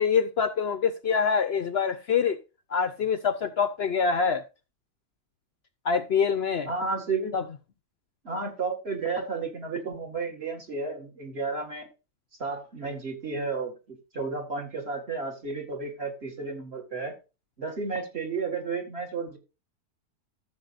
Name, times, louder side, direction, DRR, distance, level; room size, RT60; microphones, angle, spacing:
voice 1, 0.0-2.4 2.7-4.4 5.8-6.7 7.3-7.4, left 6 dB, 55° left, 0.7 m, -25 dB
voice 2, 6.7-7.3 8.2-11.9 12.4-13.8 14.1-17.1 17.6-19.4, right 4 dB, 45° right, 2.1 m, -32 dB
14.0 x 7.0 x 2.6 m
omnidirectional pair, 1.6 m